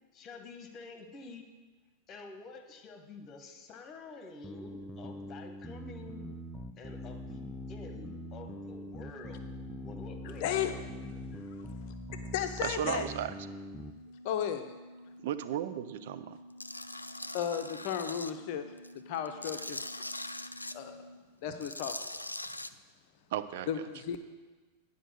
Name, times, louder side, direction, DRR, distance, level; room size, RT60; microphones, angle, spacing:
voice 1, 0.1-1.4 2.1-6.3 6.8-9.4 9.8-10.8 11.3-11.5, left 3 dB, 30° left, 5 dB, 1.3 m, -48 dB
sound 1, 4.4-13.9, equal, ahead, 0.5 m, -43 dB
sound 2, 5.0-21.2, equal, 90° right, 1.2 m, -53 dB
voice 2, 10.4-10.8 12.3-13.1 14.2-14.7 17.3-18.7 19.1-19.8 20.7-21.1 21.4-22.2 23.7-24.2, left 9 dB, 45° left, 7 dB, 0.6 m, -34 dB
voice 3, 12.6-13.3 15.2-16.4 23.3-23.7, right 10 dB, 55° right, 12 dB, 0.4 m, -34 dB
Tools, 16.6-18.3 18.8-20.7 21.5-22.7, left 2 dB, 85° left, 0.3 m, -41 dB
9.9 x 5.2 x 6.6 m, 1.3 s
figure-of-eight pair, 90°, 0 cm